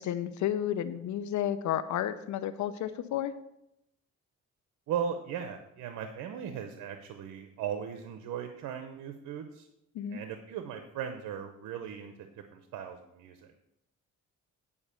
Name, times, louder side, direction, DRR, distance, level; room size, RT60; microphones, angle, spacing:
voice 1, 0.0-3.3 9.9-10.2, left 10 dB, 70° left, 12 dB, 0.6 m, -32 dB
voice 2, 4.9-9.7 10.1-13.5, right 8 dB, 85° right, 7 dB, 0.9 m, -38 dB
9.7 x 5.1 x 6.8 m, 0.82 s
cardioid pair, 90°, 30 cm